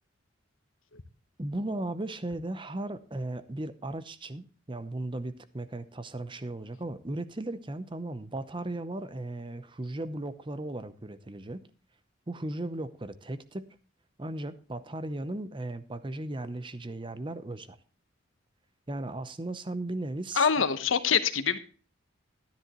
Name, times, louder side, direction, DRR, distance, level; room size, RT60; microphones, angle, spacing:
voice 1, 1.4-11.6 12.3-13.8 14.2-17.8 18.9-20.5, right 2 dB, 25° right, 13 dB, 0.7 m, -36 dB
voice 2, 20.4-21.6, left 6 dB, 80° left, 11 dB, 1.0 m, -25 dB
12.5 x 10.5 x 3.0 m, 0.37 s
head